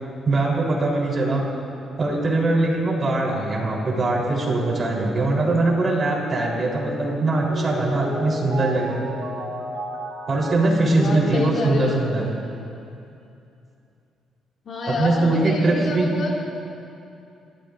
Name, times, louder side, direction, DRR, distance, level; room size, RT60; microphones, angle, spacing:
voice 1, 0.3-1.4 2.0-9.0 10.3-12.3 14.9-16.1, right 2 dB, 40° right, -3 dB, 3.8 m, -21 dB
Mallet percussion, 7.2-12.2, right 1 dB, 85° right, 2.5 m, -33 dB
voice 2, 10.9-12.2 14.6-16.3, left 2 dB, 60° left, -2 dB, 2.4 m, -28 dB
27.0 x 12.5 x 2.6 m, 2.7 s
cardioid pair, 90°, 0 cm